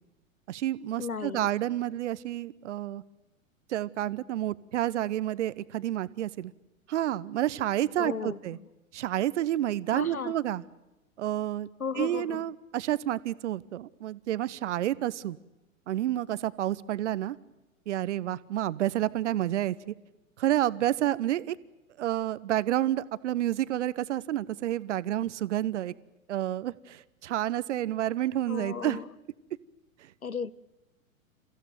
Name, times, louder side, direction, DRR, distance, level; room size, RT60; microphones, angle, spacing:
voice 1, 0.5-3.0 3.7-6.5 6.9-8.6 8.9-10.6 11.2-11.7 11.9-15.4 15.9-17.4 17.9-19.9 20.4-21.6 22.0-25.9 26.3-29.0, right 13 dB, 55° right, 1.1 m, -29 dB
voice 2, 1.0-1.5 8.0-8.7 9.9-10.4 11.8-12.4 28.5-29.1 30.2-30.5, left 5 dB, 85° left, 1.1 m, -35 dB
30.0 x 15.5 x 9.3 m
figure-of-eight pair, 105°, 42 cm